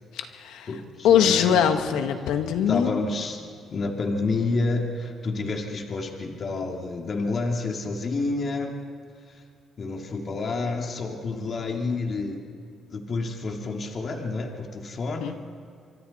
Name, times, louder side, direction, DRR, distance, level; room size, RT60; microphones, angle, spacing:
voice 1, 0.1-0.7 1.0-3.0 15.2-15.3, left 8 dB, 90° left, 6 dB, 1.6 m, -22 dB
voice 2, 0.7-2.1 2.7-8.8 9.8-12.5 12.9-15.3, left 3 dB, 45° left, 2 dB, 2.6 m, -29 dB
26.5 x 24.5 x 4.3 m, 2.4 s
cardioid pair, 90°, 0 cm